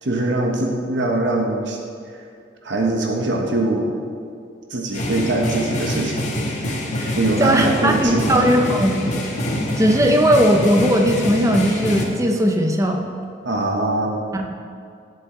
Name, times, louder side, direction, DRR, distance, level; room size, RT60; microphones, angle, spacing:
voice 1, 0.0-1.8 2.1-2.2 2.6-4.0 4.7-6.4 6.6-6.7 7.2-8.5 13.4-14.3, right 2 dB, 70° right, 1 dB, 1.2 m, -22 dB
sound 1, 4.9-12.1, left 1 dB, 40° left, 1.6 m, -25 dB
voice 2, 7.0-9.1 9.8-13.1 14.3-14.6, equal, 15° right, 3 dB, 0.9 m, -18 dB
18.0 x 7.6 x 3.9 m, 2.4 s
head